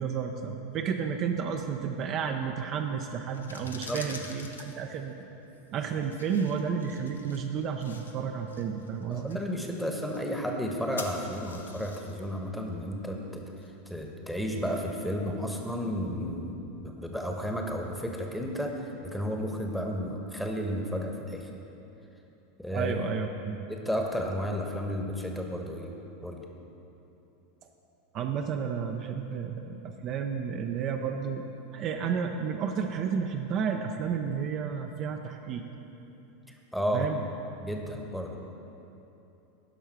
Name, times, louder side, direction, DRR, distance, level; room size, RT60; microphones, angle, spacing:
voice 1, 0.0-5.1 5.7-9.4 22.7-23.6 28.1-31.4 31.7-35.7 36.9-37.2, right 6 dB, 40° right, 4 dB, 0.5 m, -32 dB
sound 1, 3.2-14.1, left 3 dB, 80° left, 0.8 m, -48 dB
voice 2, 3.6-4.0 9.1-13.4 13.9-21.5 22.6-23.0 23.7-25.9 26.2-26.5 36.5-37.1 37.6-38.4, equal, ahead, 1 dB, 1.1 m, -33 dB
11.0 x 5.5 x 5.8 m, 3.0 s
figure-of-eight pair, 85°, 0 cm